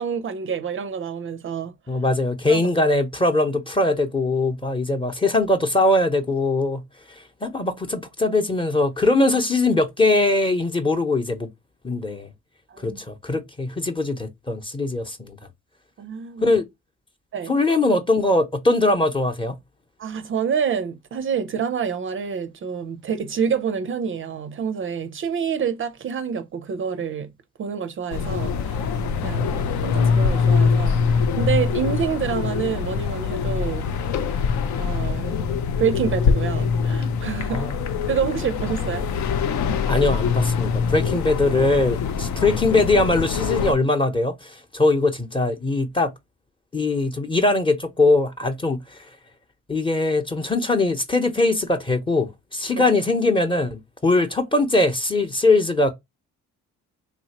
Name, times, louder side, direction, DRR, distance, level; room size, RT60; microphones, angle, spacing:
voice 1, 0.0-1.7 2.5-2.7 12.7-13.0 16.0-16.5 17.3-17.5 20.0-27.3 27.6-28.9 29.2-33.9 34.8-35.4 35.8-37.6 38.1-39.1 52.8-53.0, right 7 dB, 45° right, 0.4 m, -27 dB
voice 2, 1.9-6.8 7.4-11.5 11.8-12.3 12.8-15.4 16.4-16.6 17.5-19.5 37.5-37.8 39.9-46.1 46.7-48.8 49.7-55.9, left 2 dB, 15° left, 0.8 m, -21 dB
sound 1, 28.1-43.7, left 5 dB, 70° left, 0.6 m, -23 dB
3.3 x 2.7 x 2.8 m
cardioid pair, 90°, 30 cm